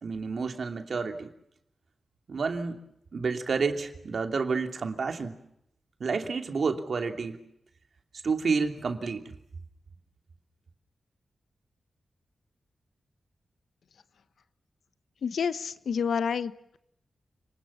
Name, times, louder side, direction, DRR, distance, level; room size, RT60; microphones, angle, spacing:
voice 1, 0.0-1.3 2.3-2.8 3.1-5.3 6.0-7.4 8.2-9.2, right 4 dB, 65° right, 5 dB, 2.8 m, -29 dB
voice 2, 15.2-16.8, left 6 dB, 85° left, 13 dB, 1.1 m, -29 dB
29.0 x 20.5 x 7.2 m, 0.76 s
cardioid pair, 70°, 0 cm